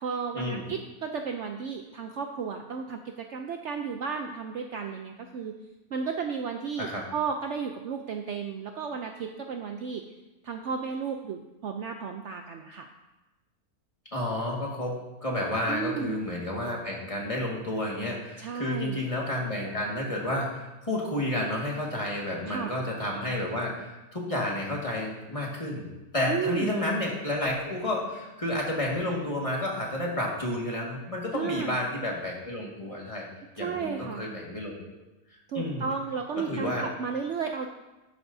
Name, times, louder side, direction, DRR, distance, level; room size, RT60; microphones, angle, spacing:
voice 1, 0.0-5.5 5.9-10.0 10.4-12.9 15.7-16.2 18.4-19.0 22.5-22.7 26.3-26.8 31.3-31.8 33.6-34.2 35.5-37.7, right 6 dB, 65° right, 4 dB, 0.8 m, -33 dB
voice 2, 14.1-25.9 26.1-33.3 33.6-35.0 35.5-35.9 36.4-36.9, left 1 dB, 20° left, -3 dB, 1.8 m, -31 dB
11.5 x 10.0 x 2.7 m, 1.1 s
omnidirectional pair, 1.6 m